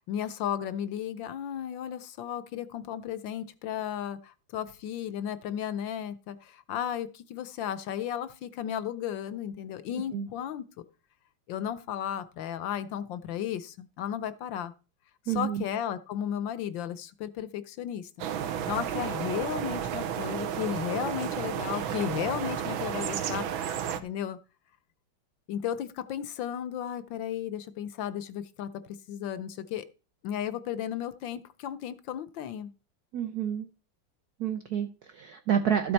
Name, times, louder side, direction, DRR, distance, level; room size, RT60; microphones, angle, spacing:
voice 1, 0.1-10.6 11.5-14.7 15.3-18.1 18.7-24.4 25.5-28.7 29.1-29.8 30.2-32.7, left 10 dB, 70° left, 14 dB, 1.3 m, -34 dB
voice 2, 15.3-15.6 33.1-33.7 34.4-35.9, right 8 dB, 60° right, 6 dB, 1.2 m, -29 dB
sound 1, 18.2-24.0, right 9 dB, 75° right, 1.7 m, -32 dB
13.5 x 7.8 x 4.1 m, 0.34 s
omnidirectional pair, 2.3 m